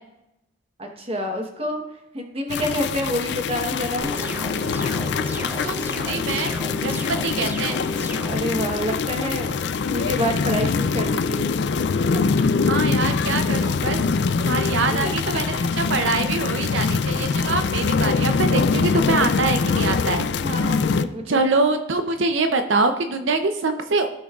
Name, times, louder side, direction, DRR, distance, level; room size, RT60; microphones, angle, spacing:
voice 1, 0.8-1.8 2.1-4.2 8.3-9.6 9.9-12.3 14.9-15.1 15.5-15.7 20.4-21.4, equal, 30° right, 3 dB, 1.1 m, -28 dB
sound 1, 2.5-21.0, left 5 dB, 60° left, 0.3 m, -23 dB
sound 2, 4.0-8.4, equal, 10° right, 0.5 m, -33 dB
voice 2, 5.4-6.5 6.8-7.8 12.6-14.0 14.4-20.3 21.3-24.1, right 3 dB, 75° right, 7 dB, 0.6 m, -24 dB
16.0 x 6.2 x 2.4 m, 0.89 s
head